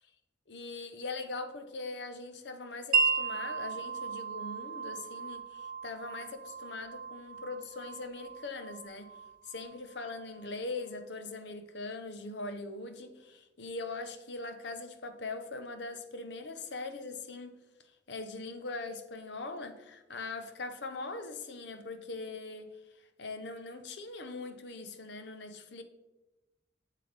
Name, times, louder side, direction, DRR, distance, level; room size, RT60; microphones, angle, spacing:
voice 1, 0.5-9.1 9.4-17.5 18.1-25.8, left 3 dB, 65° left, 8 dB, 0.8 m, -41 dB
Wind chime, 2.9-10.6, right 5 dB, 50° right, 1.0 m, -35 dB
8.0 x 7.6 x 3.3 m, 1.1 s
head